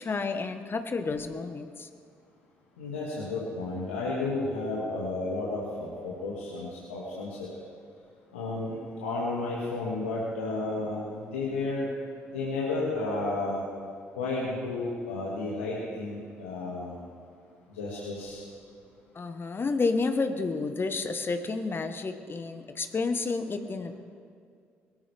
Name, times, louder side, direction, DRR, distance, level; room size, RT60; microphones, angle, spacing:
voice 1, 0.0-1.9 19.1-24.0, left 4 dB, 35° left, 8 dB, 1.3 m, -30 dB
voice 2, 2.8-7.5 8.3-11.9 12.3-13.6 14.2-17.0 17.7-18.4, left 2 dB, 80° left, -6 dB, 2.1 m, -32 dB
22.5 x 13.5 x 3.5 m, 2.2 s
figure-of-eight pair, 45°, 7 cm